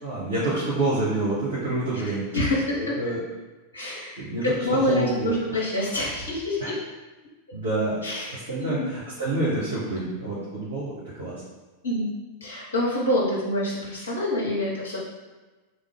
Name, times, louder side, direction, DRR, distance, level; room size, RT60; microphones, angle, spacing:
voice 1, 0.0-2.4 2.7-3.2 4.2-4.5 4.7-5.6 6.6-6.7 7.5-10.9 11.2-11.3, right 2 dB, 65° right, -10 dB, 1.3 m, -28 dB
voice 2, 2.0-3.0 3.7-6.8 8.0-8.9 11.8-12.1 12.4-15.0, left 1 dB, 70° left, -4 dB, 0.8 m, -27 dB
3.4 x 2.3 x 3.7 m, 1.2 s
figure-of-eight pair, 90°, 0 cm